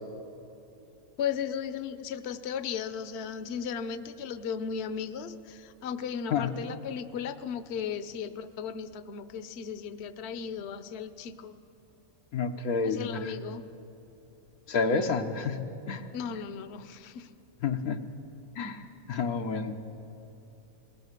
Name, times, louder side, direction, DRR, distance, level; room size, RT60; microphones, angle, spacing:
voice 1, 1.2-11.6 12.8-13.7 16.1-17.3, left 7 dB, 55° left, 11 dB, 0.9 m, -36 dB
voice 2, 12.3-13.3 14.7-16.1 17.6-18.0 18.6-18.8 19.1-19.8, left 5 dB, 90° left, 4 dB, 1.5 m, -29 dB
21.0 x 18.5 x 6.7 m, 2.9 s
omnidirectional pair, 1.5 m